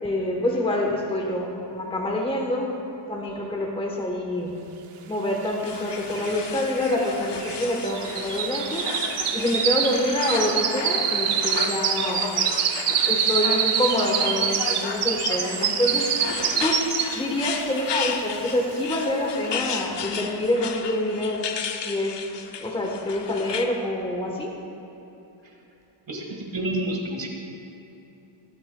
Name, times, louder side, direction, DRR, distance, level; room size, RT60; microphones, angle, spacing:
voice 1, 0.0-2.7 3.1-4.6 5.1-8.9 9.3-12.2 13.0-16.1 16.6-16.8 17.1-21.4 21.8-22.2 22.6-24.5, left 1 dB, 10° left, 0 dB, 1.1 m, -26 dB
sound 1, 5.6-23.7, left 7 dB, 60° left, 0.7 m, -34 dB
sound 2, 5.6-5.7 5.9-17.4 17.8-18.1 18.5-18.6, right 8 dB, 85° right, 0.8 m, -26 dB
voice 2, 26.1-27.3, right 1 dB, 60° right, 0 dB, 1.8 m, -29 dB
20.5 x 8.7 x 2.2 m, 2.9 s
wide cardioid pair, 160°, 49 cm